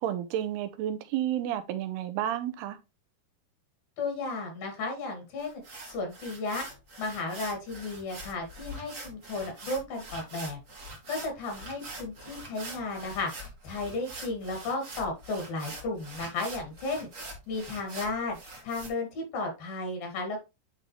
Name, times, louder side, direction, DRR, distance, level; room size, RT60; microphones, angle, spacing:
voice 1, 0.0-2.8, right 11 dB, 85° right, 2.8 m, -31 dB
voice 2, 4.0-6.7 7.0-17.1 17.5-18.4 18.6-20.4, left 3 dB, 65° left, 3.9 m, -34 dB
sound 1, 5.4-18.9, right 1 dB, 60° right, 0.8 m, -44 dB
9.8 x 3.8 x 3.2 m
omnidirectional pair, 4.5 m